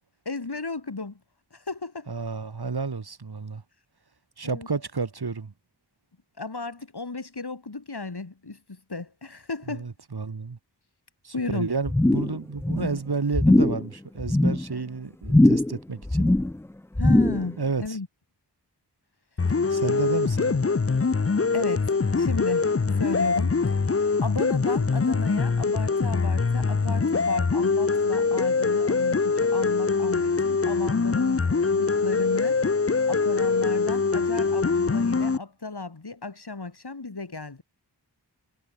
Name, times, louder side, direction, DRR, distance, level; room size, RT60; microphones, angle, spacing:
voice 1, 0.3-1.2 1.5-2.1 4.4-4.7 6.4-9.9 11.3-11.7 17.0-18.1 21.5-21.8 22.2-22.7 23.0-23.8 24.2-31.5 31.7-32.6 33.1-37.6, left 3 dB, 65° left, 3.3 m, -34 dB
voice 2, 2.1-3.6 4.4-5.5 9.7-10.6 11.2-16.3 17.6-17.8 19.7-20.6, right 4 dB, 65° right, 1.6 m, -31 dB
sound 1, 11.9-12.4 12.6-13.0 13.3-13.8 14.2-14.6 15.2-15.8 16.0-16.6 16.9-17.5 17.8-17.9, left 1 dB, 5° left, 0.3 m, -20 dB
sound 2, 19.4-35.4, left 4 dB, 35° left, 0.7 m, -23 dB
wide cardioid pair, 50°, 42 cm